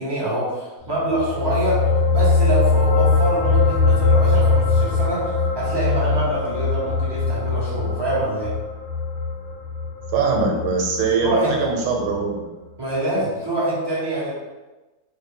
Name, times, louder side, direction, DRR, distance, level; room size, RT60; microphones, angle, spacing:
voice 1, 0.0-8.5 11.2-11.6 12.8-14.3, right 1 dB, 25° right, -7 dB, 0.6 m, -25 dB
sound 1, 1.0-11.7 12.0-12.2, left 3 dB, 65° left, 0.7 m, -21 dB
voice 2, 10.1-12.5, right 4 dB, 85° right, 0 dB, 1.2 m, -22 dB
3.3 x 2.2 x 3.6 m, 1.1 s
omnidirectional pair, 1.7 m